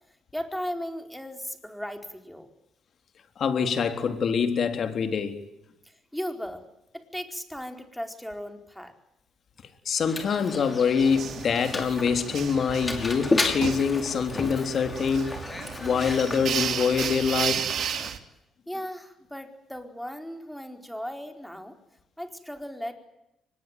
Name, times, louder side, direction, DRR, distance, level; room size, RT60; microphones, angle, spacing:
voice 1, 0.3-2.5 5.8-6.6 6.9-8.9 18.7-21.8 22.2-22.9, equal, 5° left, 4.5 m, -36 dB
voice 2, 3.4-5.4 9.9-15.4 15.8-17.7, left 6 dB, 55° left, 3.7 m, -25 dB
Mechanisms, 10.0-18.1, left 2 dB, 25° left, 5.6 m, -33 dB
sound 1, 11.0-18.2, right 9 dB, 70° right, 2.5 m, -33 dB
24.5 x 21.0 x 9.4 m
cardioid pair, 90°, 0 cm